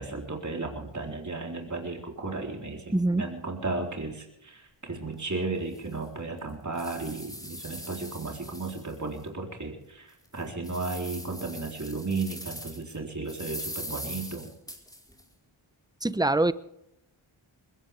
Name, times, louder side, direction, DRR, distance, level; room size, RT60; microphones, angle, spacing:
voice 1, 0.0-14.5, right 3 dB, 35° right, 1 dB, 4.0 m, -34 dB
voice 2, 2.9-3.3 16.0-16.5, right 2 dB, 10° right, 15 dB, 0.9 m, -24 dB
sound 1, 5.1-5.2 5.7-5.8 6.4-9.2 9.6-9.7 10.2-13.0 13.3-15.2, equal, 10° left, 4.6 m, -41 dB
21.0 x 17.5 x 3.6 m, 0.81 s
cardioid pair, 45°, 48 cm